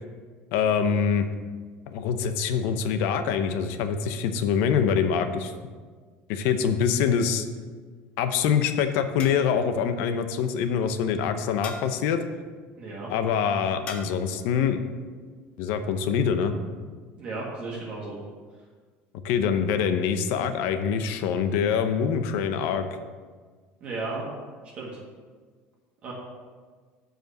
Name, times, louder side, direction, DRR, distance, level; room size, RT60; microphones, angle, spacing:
voice 1, 0.5-1.3 1.9-5.5 6.3-7.4 8.2-12.2 13.1-14.9 15.6-16.5 19.2-22.8, left 7 dB, 65° left, 9 dB, 0.7 m, -25 dB
sound 1, 9.2-9.8 11.6-12.1 13.9-14.3, left 5 dB, 30° left, 0.9 m, -42 dB
voice 2, 12.8-13.1 17.1-18.2 23.8-24.2 24.7-24.9 26.0-26.1, right 3 dB, 30° right, -4 dB, 1.6 m, -34 dB
7.7 x 5.1 x 6.5 m, 1.5 s
cardioid pair, 170°, 4 cm